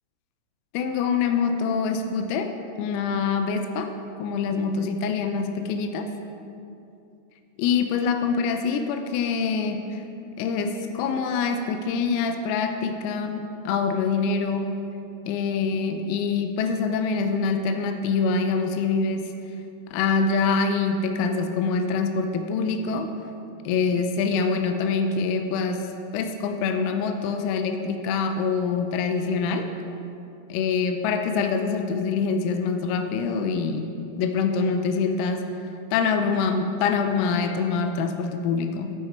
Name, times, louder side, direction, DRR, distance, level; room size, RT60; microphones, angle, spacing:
voice 1, 0.7-2.5 2.8-3.9 4.2-6.1 7.6-10.0 10.4-14.7 15.3-19.3 19.9-23.1 23.7-25.9 26.1-29.7 30.5-33.9 34.2-35.5 35.9-38.9, left 5 dB, 90° left, 6 dB, 3.3 m, -25 dB
13.5 x 5.8 x 4.4 m, 2.7 s
omnidirectional pair, 6.0 m